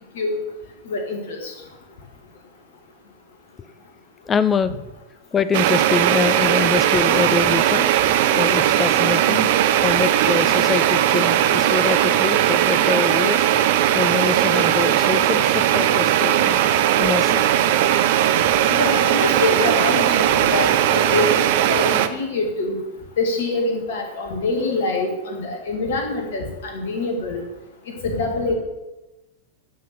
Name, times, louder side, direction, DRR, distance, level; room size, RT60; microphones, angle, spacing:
voice 1, 0.9-1.5 18.7-22.8 23.2-27.4 28.0-28.5, left 3 dB, 55° left, 2 dB, 2.4 m, -25 dB
voice 2, 4.2-4.8 5.3-7.9 8.3-9.5 9.8-13.5 13.9-16.6 17.0-17.5 18.0-18.1, left 5 dB, 20° left, 13 dB, 0.6 m, -24 dB
sound 1, 5.5-22.1, right 11 dB, 50° right, 0.6 m, -18 dB
11.0 x 6.0 x 6.1 m, 1.0 s
figure-of-eight pair, 90°, 0 cm